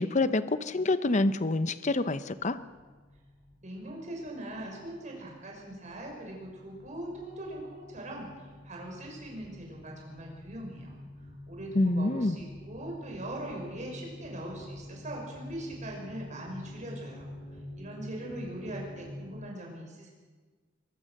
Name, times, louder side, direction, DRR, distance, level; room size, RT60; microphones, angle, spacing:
voice 1, 0.0-2.6 11.7-12.4, left 2 dB, 40° left, 13 dB, 0.8 m, -27 dB
sound 1, 2.6-19.3, left 1 dB, 5° left, 6.9 m, -47 dB
voice 2, 3.6-17.3 17.8-20.1, right 1 dB, 40° right, 0 dB, 6.0 m, -41 dB
22.5 x 20.5 x 6.6 m, 1.4 s
head